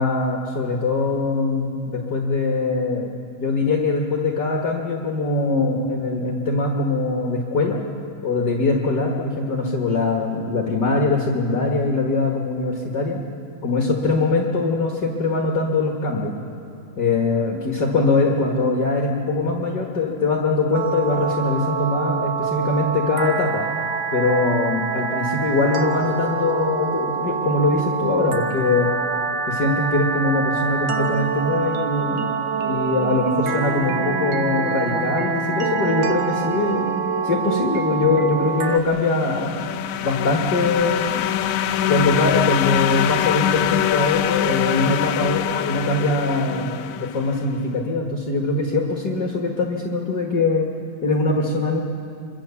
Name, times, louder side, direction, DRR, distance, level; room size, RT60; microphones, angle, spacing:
voice 1, 0.0-7.8 8.2-13.2 13.6-16.3 17.0-23.6 24.1-28.9 29.5-32.3 32.6-36.9 37.2-39.6 40.0-41.2 41.9-50.7 51.0-51.8, left 3 dB, 45° left, 0 dB, 1.5 m, -22 dB
sound 1, 20.7-38.8, right 5 dB, 70° right, 1.2 m, -25 dB
sound 2, 38.8-47.4, left 11 dB, 80° left, 1.7 m, -24 dB
24.5 x 23.5 x 7.1 m, 2.5 s
omnidirectional pair, 4.0 m